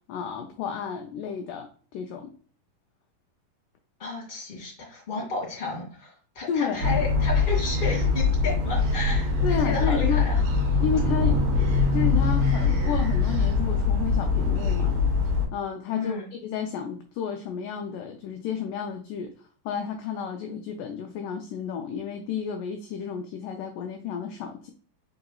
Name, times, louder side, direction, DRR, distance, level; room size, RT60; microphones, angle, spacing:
voice 1, 0.1-2.3 6.5-6.9 9.4-10.2 10.8-11.5 11.9-15.0 15.5-24.7, left 7 dB, 85° left, 4 dB, 1.8 m, -32 dB
voice 2, 4.0-10.4 15.9-16.3, left 3 dB, 20° left, -4 dB, 1.9 m, -32 dB
sound 1, 6.8-15.5, left 4 dB, 70° right, 2.3 m, -23 dB
5.5 x 3.9 x 2.3 m, 0.42 s
omnidirectional pair, 4.2 m